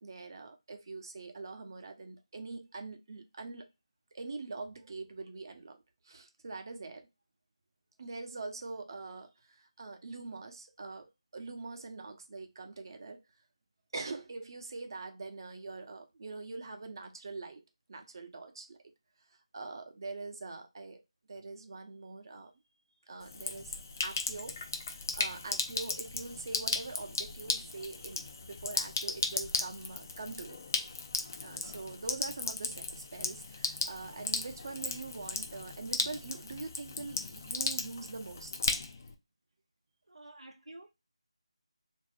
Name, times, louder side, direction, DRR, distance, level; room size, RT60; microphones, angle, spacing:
voice 1, 0.0-3.6 4.1-5.8 6.0-7.1 8.0-11.1 11.3-13.2 13.9-17.6 17.9-18.8 19.5-21.0 21.3-22.5 23.1-23.7 24.0-24.6 24.9-30.6 31.4-38.5, right 3 dB, 45° right, 0.7 m, -43 dB
Sink (filling or washing), 23.2-39.1, left 4 dB, 30° left, 0.4 m, -36 dB
voice 2, 40.1-40.9, right 2 dB, 85° right, 0.6 m, -50 dB
3.2 x 2.6 x 3.1 m
figure-of-eight pair, 165°, 3 cm